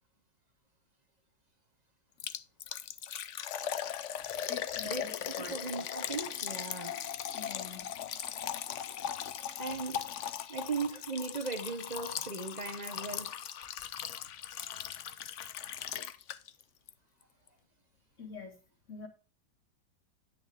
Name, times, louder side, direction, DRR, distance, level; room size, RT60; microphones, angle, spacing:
Liquid, 2.2-16.6 16.9-17.0 17.5-17.6, left 10 dB, 75° left, 0.6 m, -39 dB
voice 1, 4.3-5.5 7.2-7.9 18.2-18.6 18.9-19.1, left 4 dB, 40° left, 2.2 m, -45 dB
voice 2, 5.5-7.0 9.6-10.0 10.5-13.3, right 4 dB, 30° right, 0.8 m, -37 dB
10.0 x 8.5 x 3.5 m
omnidirectional pair, 2.0 m